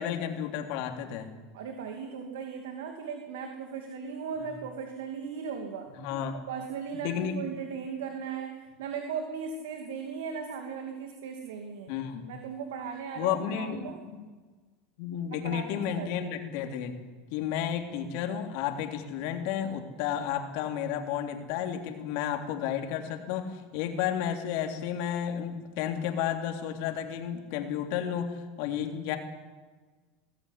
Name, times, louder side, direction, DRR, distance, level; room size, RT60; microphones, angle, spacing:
voice 1, 0.0-1.3 5.9-6.4 6.9-7.5 11.9-12.3 13.2-14.3 15.0-17.0 17.3-29.2, left 9 dB, 65° left, 4 dB, 3.3 m, -32 dB
voice 2, 1.5-5.9 6.3-11.9 12.3-14.0 15.3-16.2, right 6 dB, 85° right, 4 dB, 2.6 m, -37 dB
22.0 x 15.0 x 10.0 m, 1.4 s
supercardioid pair, 120°, 0 cm